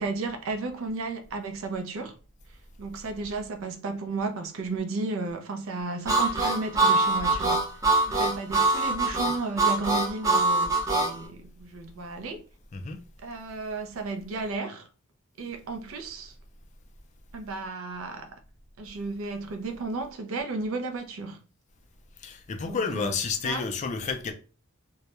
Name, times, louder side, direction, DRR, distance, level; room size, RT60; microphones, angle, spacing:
voice 1, 0.0-2.1 2.8-7.7 8.1-12.5 13.2-14.9 15.4-16.3 17.3-18.4 18.8-21.4 22.7-23.2 23.4-23.7, right 3 dB, 70° right, 0.4 m, -33 dB
Harmonica, 6.1-11.1, right 2 dB, 15° right, 0.5 m, -23 dB
voice 2, 22.2-24.3, left 5 dB, 35° left, 0.3 m, -30 dB
2.2 x 2.0 x 2.8 m
head